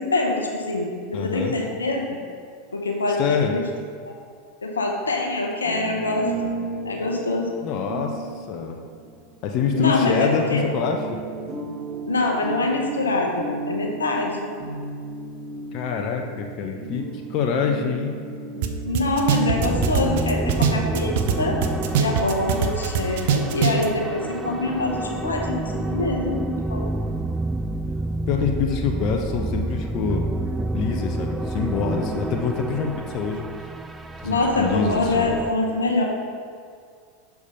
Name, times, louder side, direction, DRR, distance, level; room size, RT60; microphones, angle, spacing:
voice 1, 0.0-2.2 2.7-3.6 4.6-6.6 6.8-7.5 9.8-10.6 12.0-14.5 18.8-21.6 22.0-26.9 34.2-36.0, left 2 dB, 85° left, 1 dB, 0.8 m, -25 dB
voice 2, 1.1-1.5 3.2-3.5 7.6-8.8 9.4-11.0 15.7-18.1 19.4-19.9 28.3-30.2 30.7-33.5 34.2-35.3, left 6 dB, 50° left, 2 dB, 0.6 m, -26 dB
sound 1, 5.6-25.2, right 3 dB, 35° right, 1.6 m, -36 dB
sound 2, 18.6-18.7 18.9-21.3 21.6-23.9, right 8 dB, 60° right, 0.5 m, -22 dB
sound 3, 19.6-35.5, right 2 dB, 10° right, 0.3 m, -29 dB
6.4 x 3.5 x 5.5 m, 2.2 s
hypercardioid pair, 90°, 0 cm